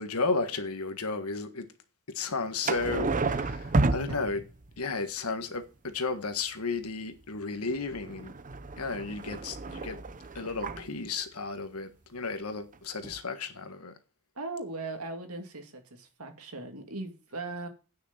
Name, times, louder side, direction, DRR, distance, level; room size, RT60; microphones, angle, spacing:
voice 1, 0.0-1.7 2.1-4.5 4.8-8.3 8.8-10.0 10.3-13.9, left 4 dB, 75° left, 1.6 m, -33 dB
sound 1, 2.6-4.8 7.7-10.9 12.7-12.8 13.0-13.2, right 3 dB, 35° right, 0.8 m, -31 dB
voice 2, 14.4-17.7, right 2 dB, 70° right, 2.4 m, -39 dB
9.2 x 6.6 x 7.3 m
head